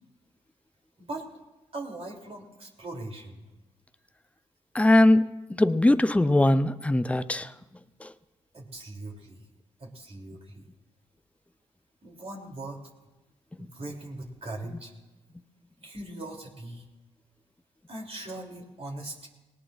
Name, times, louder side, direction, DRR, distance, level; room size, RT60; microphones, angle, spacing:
voice 1, 1.7-3.4 8.5-9.4 9.8-10.6 12.0-12.8 13.6-14.9 15.8-16.9 17.9-19.3, right 2 dB, 45° right, 3.2 m, -40 dB
voice 2, 4.7-5.3 5.6-7.5 8.0-8.1, left 1 dB, 10° left, 0.6 m, -21 dB
18.5 x 18.0 x 2.5 m
hypercardioid pair, 45°, 15 cm